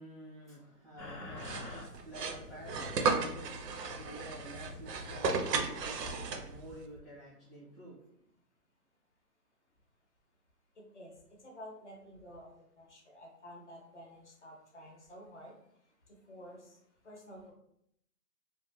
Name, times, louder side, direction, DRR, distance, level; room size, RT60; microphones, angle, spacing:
voice 1, 0.0-8.1, right 1 dB, ahead, -13 dB, 0.5 m, -50 dB
sound 1, 1.0-7.0, left 2 dB, 85° left, 0.8 m, -48 dB
sound 2, 1.4-6.7, right 4 dB, 85° right, 0.6 m, -35 dB
voice 2, 10.7-17.5, equal, 50° left, -1 dB, 0.6 m, -52 dB
2.3 x 2.1 x 3.0 m, 0.73 s
hypercardioid pair, 170°, 47 cm